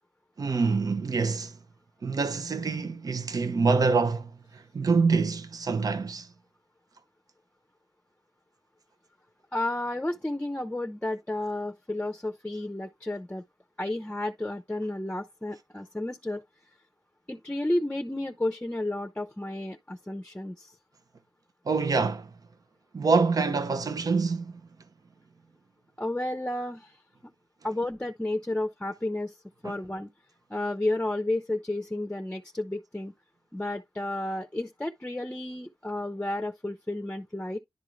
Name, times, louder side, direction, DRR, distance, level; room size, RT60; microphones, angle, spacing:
voice 1, 0.4-1.5 2.0-6.3 21.7-22.3 22.9-24.5 29.6-29.7, right 4 dB, 60° right, 0.8 m, -26 dB
voice 2, 9.5-13.4 13.8-16.4 17.3-20.7 26.0-27.0 27.6-29.3 29.6-30.1 30.5-33.1 33.5-37.6, left 1 dB, 15° left, 0.7 m, -32 dB
11.0 x 3.7 x 3.1 m
cardioid pair, 55°, 7 cm